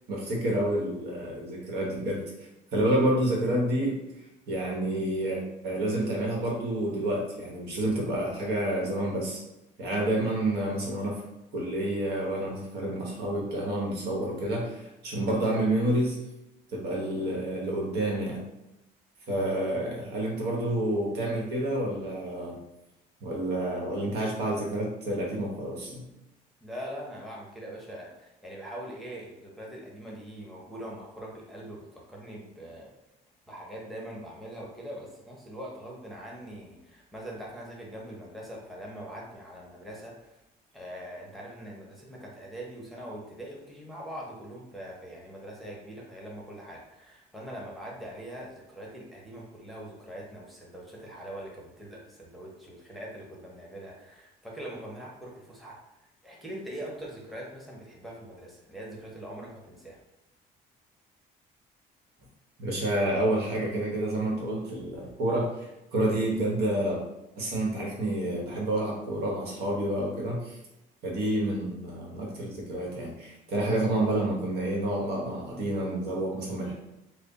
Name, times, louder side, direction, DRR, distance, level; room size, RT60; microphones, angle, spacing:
voice 1, 0.1-2.2 2.7-4.0 4.5-9.4 9.8-11.2 11.5-16.2 16.7-18.4 19.3-22.6 23.2-26.1 62.6-67.0 67.4-70.6 71.0-76.7, right 1 dB, 70° right, -2 dB, 1.3 m, -29 dB
voice 2, 26.6-32.9 33.5-40.3 40.7-55.8 56.2-60.0, right 1 dB, ahead, -4 dB, 0.8 m, -42 dB
3.3 x 2.1 x 4.0 m, 0.91 s
cardioid pair, 110°, 17 cm